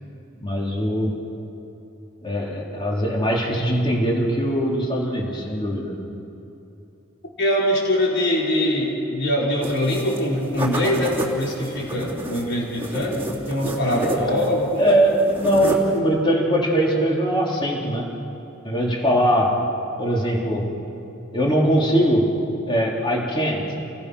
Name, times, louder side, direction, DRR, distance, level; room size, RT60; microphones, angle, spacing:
voice 1, 0.4-1.2 2.2-5.9 14.8-18.2 18.6-19.7 20.0-20.8 21.3-22.4 22.7-23.7, equal, 25° left, -2 dB, 3.7 m, -21 dB
voice 2, 7.4-14.9, left 1 dB, 55° left, -4 dB, 5.6 m, -23 dB
sound 1, 9.6-10.2 10.5-14.6 14.8-16.0, right 1 dB, 10° right, 2.9 m, -30 dB
29.5 x 21.5 x 6.4 m, 2.9 s
head